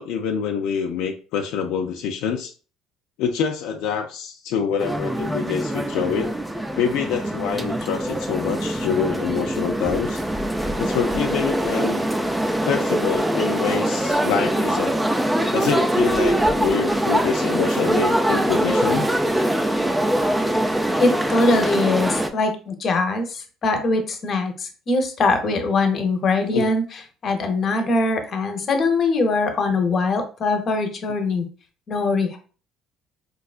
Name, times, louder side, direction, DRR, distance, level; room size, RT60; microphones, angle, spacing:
voice 1, 0.0-2.5 3.2-6.4 6.8-10.2 10.8-12.0 12.6-15.0 15.5-19.1 26.5-26.7, left 7 dB, 80° left, 4 dB, 0.4 m, -25 dB
sound 1, 4.8-22.3, right 1 dB, 5° right, 0.4 m, -23 dB
voice 2, 21.0-26.8 27.2-31.4 31.9-32.4, left 3 dB, 40° left, 5 dB, 0.7 m, -22 dB
4.5 x 2.3 x 2.4 m, 0.37 s
cardioid pair, 125°, 0 cm